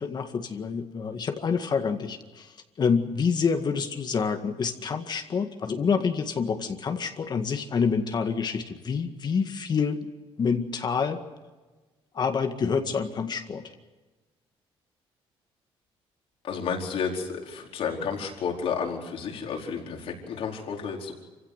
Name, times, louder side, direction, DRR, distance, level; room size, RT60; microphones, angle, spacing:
voice 1, 0.0-10.1 10.4-11.2 12.1-13.6, left 5 dB, 45° left, 6 dB, 1.9 m, -27 dB
voice 2, 16.4-21.1, left 6 dB, 70° left, 1 dB, 4.7 m, -31 dB
26.5 x 16.0 x 8.2 m, 1.3 s
cardioid pair, 110°, 10 cm